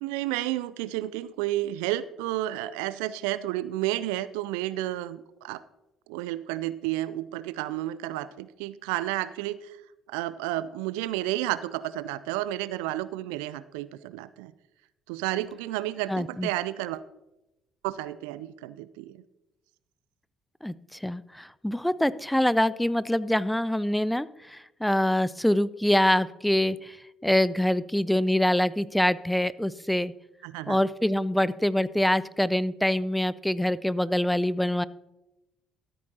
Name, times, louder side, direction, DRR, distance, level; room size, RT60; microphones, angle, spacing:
voice 1, 0.0-5.6 6.1-9.8 10.1-14.5 15.1-17.0 17.8-19.2 30.4-30.8, right 15 dB, 75° right, 16 dB, 0.3 m, -31 dB
voice 2, 16.1-16.5 20.6-27.0 27.2-30.1 30.7-34.8, left 1 dB, 5° left, 18 dB, 0.4 m, -25 dB
13.5 x 8.4 x 2.8 m, 0.94 s
hypercardioid pair, 50°, 0 cm